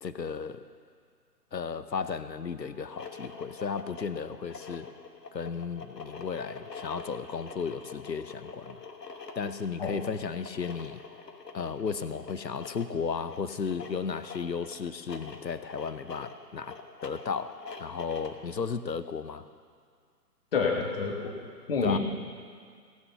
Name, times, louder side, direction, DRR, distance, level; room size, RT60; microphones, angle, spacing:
voice 1, 0.0-0.6 1.5-4.9 5.3-8.8 9.4-11.0 11.5-16.8 17.0-19.4 21.8-22.0, left 6 dB, 90° left, 12 dB, 0.8 m, -34 dB
sound 1, 2.8-18.5, left 4 dB, 75° left, 1.5 m, -45 dB
voice 2, 20.5-21.4 21.7-22.0, left 5 dB, 35° left, 2 dB, 1.6 m, -28 dB
17.5 x 6.5 x 6.8 m, 2.1 s
figure-of-eight pair, 145°, 49 cm